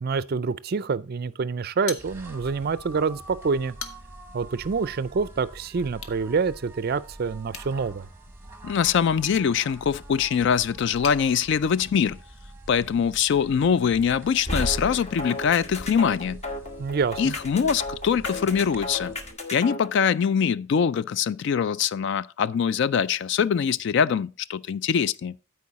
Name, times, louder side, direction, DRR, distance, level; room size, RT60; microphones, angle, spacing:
voice 1, 0.0-3.8 4.3-8.1 16.8-17.3, right 5 dB, 45° right, 0.4 m, -27 dB
sound 1, 1.8-2.6 3.0-3.1 3.6-4.3 5.9-6.2 7.5-11.2, left 6 dB, 70° left, 1.1 m, -42 dB
sound 2, 2.0-19.3, right 1 dB, 10° right, 1.0 m, -45 dB
voice 2, 8.6-12.2 12.7-16.4 17.2-19.1 19.5-25.3, left 7 dB, 55° left, 0.3 m, -23 dB
sound 3, 14.5-19.9, left 1 dB, 30° left, 1.1 m, -33 dB
13.0 x 4.7 x 4.1 m
head